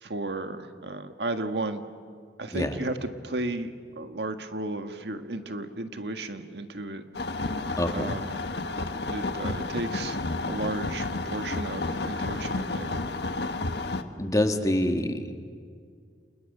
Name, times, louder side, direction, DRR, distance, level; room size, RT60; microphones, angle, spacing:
voice 1, 0.0-1.8 2.4-7.0 7.9-8.3 9.1-10.2 10.5-12.9, right 2 dB, 75° right, 7 dB, 1.6 m, -34 dB
sound 1, 7.1-14.0, left 2 dB, 70° left, 1.4 m, -31 dB
voice 2, 7.8-8.1 14.2-15.3, left 1 dB, 20° left, 6 dB, 1.6 m, -26 dB
29.5 x 29.0 x 6.7 m, 2.2 s
head